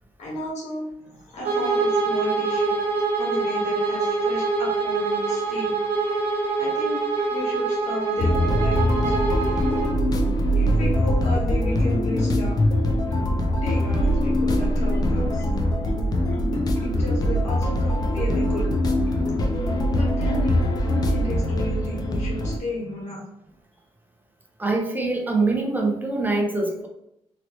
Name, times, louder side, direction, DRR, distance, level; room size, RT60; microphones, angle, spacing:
voice 1, 0.2-2.8 3.2-5.7 6.6-7.0 7.3-9.1 10.5-12.6 13.6-15.4 16.8-18.7 20.0-23.2, left 1 dB, 85° left, -3 dB, 1.5 m, -33 dB
Bowed string instrument, 1.4-10.0, right 4 dB, 75° right, 1.0 m, -25 dB
sound 1, 8.2-22.6, equal, 35° left, 0.4 m, -22 dB
Marimba xylophone, 9.4-10.4 10.8-12.6 13.1-14.0 14.5-20.0 20.5-21.3 21.9-22.1, equal, 15° left, 1.0 m, -38 dB
voice 2, 24.6-26.9, right 3 dB, 15° right, 1 dB, 0.5 m, -24 dB
3.0 x 2.9 x 2.9 m, 0.78 s
wide cardioid pair, 150°, 11 cm